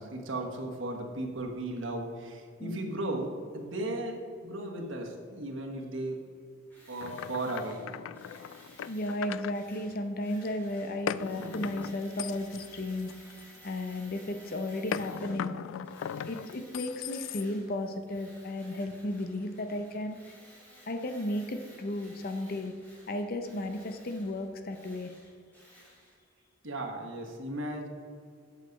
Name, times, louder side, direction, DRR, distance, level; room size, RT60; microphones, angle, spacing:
voice 1, 0.0-6.2 6.9-7.9 26.6-27.9, right 1 dB, 85° right, 2 dB, 1.3 m, -36 dB
Tools, 6.7-15.5 15.8-17.8 18.0-26.2, equal, 10° left, 2.5 m, -56 dB
sound 1, 7.0-9.6 11.1-13.7 14.9-17.7, left 8 dB, 90° left, 0.3 m, -38 dB
voice 2, 8.9-13.1 13.6-15.6 16.3-20.2 20.9-22.7 23.1-25.1, left 1 dB, 50° left, 6 dB, 0.6 m, -34 dB
8.2 x 6.6 x 5.2 m, 2.1 s
head